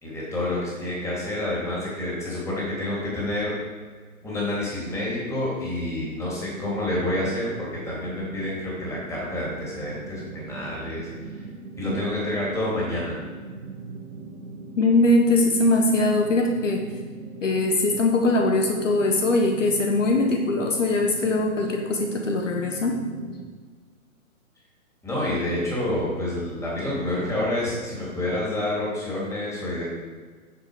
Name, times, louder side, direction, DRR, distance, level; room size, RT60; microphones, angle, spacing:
voice 1, 0.0-3.5 4.2-11.1 11.4-11.5 11.8-13.2 25.0-29.8, left 1 dB, 5° left, -6 dB, 3.0 m, -28 dB
sound 1, 7.0-23.5, right 3 dB, 70° right, 1.5 m, -40 dB
voice 2, 14.8-16.8 17.4-23.0, left 2 dB, 60° left, 2 dB, 1.3 m, -21 dB
9.7 x 7.0 x 5.0 m, 1.5 s
figure-of-eight pair, 130°, 43 cm